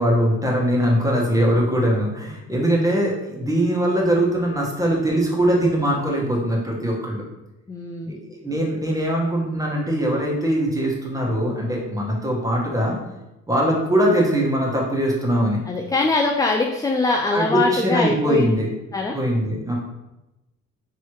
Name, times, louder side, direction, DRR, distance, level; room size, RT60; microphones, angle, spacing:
voice 1, 0.0-7.2 8.1-12.9 13.5-15.6 17.3-18.7 19.1-19.7, right 1 dB, 10° right, -3 dB, 1.3 m, -21 dB
voice 2, 7.7-8.1 15.7-18.6 18.9-19.2, left 3 dB, 10° left, 1 dB, 0.3 m, -22 dB
4.7 x 3.1 x 3.0 m, 0.97 s
cardioid pair, 90°, 30 cm